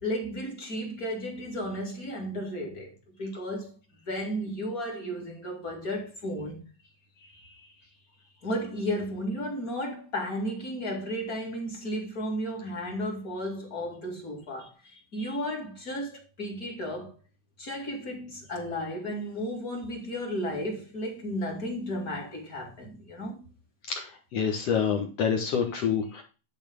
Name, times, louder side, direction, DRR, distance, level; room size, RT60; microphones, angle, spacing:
voice 1, 0.0-2.9 3.2-3.8 4.0-6.6 8.4-17.1 17.6-23.5, equal, 30° left, 2.3 m, -34 dB
voice 2, 23.9-26.2, left 7 dB, 60° left, 2.0 m, -27 dB
11.0 x 4.4 x 5.2 m
omnidirectional pair, 3.8 m